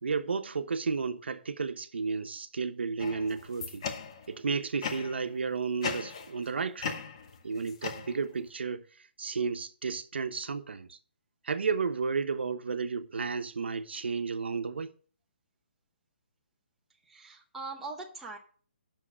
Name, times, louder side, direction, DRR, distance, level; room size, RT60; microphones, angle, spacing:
voice 1, 0.0-3.8 4.3-7.0 7.4-11.0 11.4-14.9, right 5 dB, 75° right, 1.0 m, -32 dB
sound 1, 3.0-4.4 4.8-5.3 5.8-6.5 6.8-8.5, left 6 dB, 30° left, 0.9 m, -38 dB
voice 2, 17.1-18.4, right 3 dB, 5° right, 0.7 m, -41 dB
8.7 x 6.5 x 6.3 m
hypercardioid pair, 180°, 6 cm